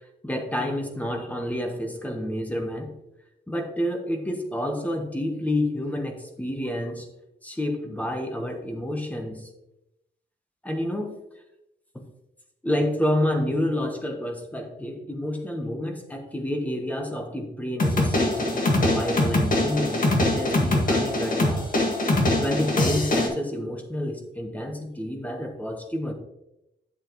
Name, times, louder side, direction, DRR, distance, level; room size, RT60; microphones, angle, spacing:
voice 1, 0.2-2.9 3.5-7.1 7.4-9.5 10.6-11.1 12.6-21.7 22.4-26.1, left 1 dB, 10° left, 4 dB, 1.1 m, -29 dB
sound 1, 17.8-23.3, left 1 dB, 50° left, 1.8 m, -23 dB
9.4 x 7.8 x 3.0 m, 0.87 s
wide cardioid pair, 170°, 18 cm